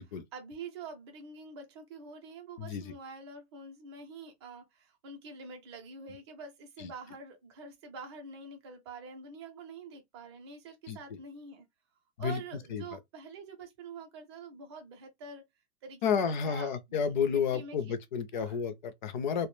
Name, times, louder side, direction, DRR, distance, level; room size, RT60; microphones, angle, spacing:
voice 1, 0.3-11.7 12.2-15.5 15.8-17.8 18.3-18.6, right 4 dB, 25° right, 0.5 m, -46 dB
voice 2, 2.6-2.9 6.8-6.9 10.9-11.0 12.2-12.4 12.7-12.8 16.0-19.5, left 6 dB, 50° left, 0.4 m, -31 dB
2.2 x 2.1 x 3.0 m
supercardioid pair, 175°, 33 cm